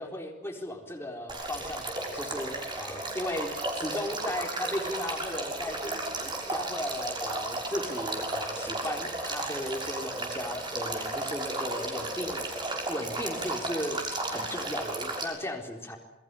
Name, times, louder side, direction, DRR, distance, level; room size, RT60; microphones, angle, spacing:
voice 1, 0.0-12.4 12.9-14.0 14.3-16.0, left 1 dB, 15° left, 2 dB, 4.2 m, -36 dB
Male speech man speaking / Stream / Trickle dribble, 1.3-15.2, right 2 dB, 25° right, 6.2 m, -34 dB
28.0 x 21.5 x 7.0 m, 0.97 s
head